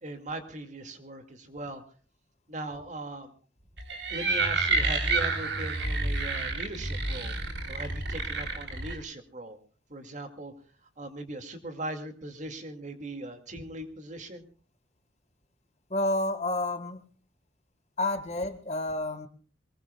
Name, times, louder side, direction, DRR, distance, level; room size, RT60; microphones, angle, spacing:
voice 1, 0.0-1.8 2.5-3.3 3.9-7.3 7.7-9.6 9.9-10.5 11.0-14.4, right 2 dB, 40° right, 7 dB, 2.2 m, -39 dB
sound 1, 3.8-8.9, right 3 dB, 70° right, 3.6 m, -29 dB
voice 2, 15.9-17.1 18.0-19.3, left 2 dB, 35° left, 9 dB, 1.6 m, -30 dB
23.5 x 21.0 x 2.3 m, 0.39 s
head